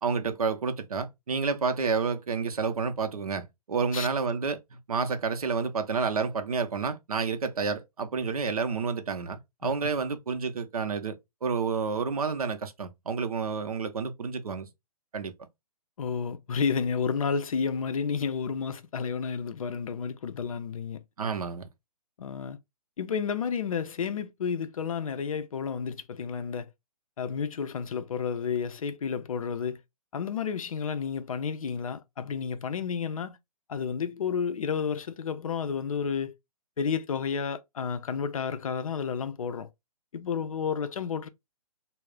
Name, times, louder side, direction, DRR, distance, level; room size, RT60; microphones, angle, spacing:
voice 1, 0.0-11.1 11.4-14.7 15.1-15.3 21.2-21.7, right 5 dB, 65° right, 0.6 m, -30 dB
voice 2, 16.0-21.0 22.2-22.6 23.0-26.7 27.2-29.8 30.1-33.4 33.7-36.3 36.8-39.7 40.1-41.3, left 6 dB, 60° left, 0.4 m, -31 dB
2.3 x 2.0 x 3.6 m
figure-of-eight pair, 130°, 20 cm